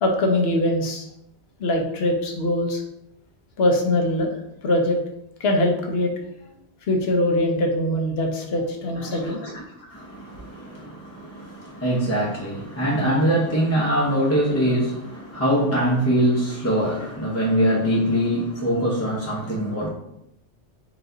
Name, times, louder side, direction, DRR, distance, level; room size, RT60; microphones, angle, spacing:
voice 1, 0.0-1.0 1.6-2.8 3.6-4.3 4.6-5.0 5.4-6.1 6.9-9.5, left 1 dB, 65° left, 2 dB, 0.9 m, -22 dB
voice 2, 8.9-9.6 9.9-19.9, equal, 15° left, -4 dB, 0.7 m, -23 dB
4.7 x 2.5 x 3.8 m, 0.81 s
omnidirectional pair, 1.2 m